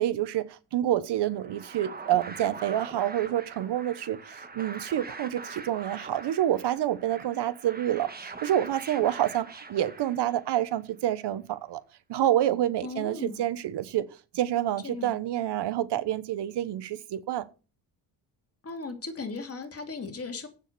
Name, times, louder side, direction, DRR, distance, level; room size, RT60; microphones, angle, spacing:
voice 1, 0.0-11.8 12.1-14.1 14.3-17.4, right 12 dB, 65° right, 1.1 m, -28 dB
sound 1, 1.3-10.6, right 4 dB, 20° right, 1.5 m, -43 dB
voice 2, 12.8-13.4 14.8-15.1 18.6-20.5, left 4 dB, 35° left, 2.7 m, -37 dB
8.6 x 7.3 x 6.8 m
cardioid pair, 110°, 43 cm